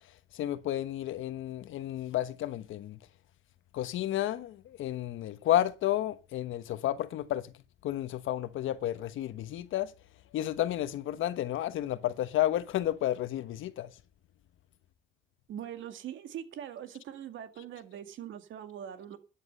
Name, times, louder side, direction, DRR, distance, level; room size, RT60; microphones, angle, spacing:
voice 1, 0.3-3.0 3.7-7.5 7.8-9.9 10.3-13.9, left 13 dB, 80° left, 1.2 m, -31 dB
voice 2, 15.5-19.2, right 10 dB, 75° right, 2.0 m, -42 dB
12.5 x 9.8 x 5.4 m
cardioid pair, 90°, 20 cm